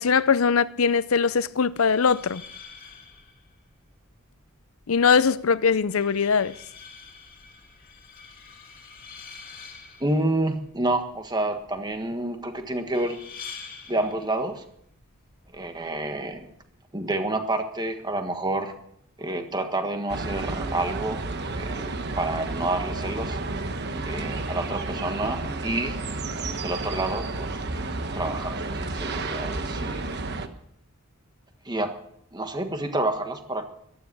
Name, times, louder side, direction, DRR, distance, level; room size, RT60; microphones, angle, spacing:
voice 1, 0.0-2.4 4.9-6.6, left 5 dB, 70° left, 0.6 m, -21 dB
sound 1, 1.7-16.7, left 5 dB, 40° left, 2.5 m, -47 dB
voice 2, 10.0-13.2 13.9-14.6 15.5-16.5 16.9-18.7 19.2-21.2 21.5-23.4 24.0-26.0 26.6-27.6 28.1-30.2 31.6-31.9 32.3-33.6, right 2 dB, 20° right, 1.5 m, -29 dB
sound 2, 20.1-30.5, right 3 dB, 50° right, 1.2 m, -31 dB
15.0 x 12.5 x 6.1 m
head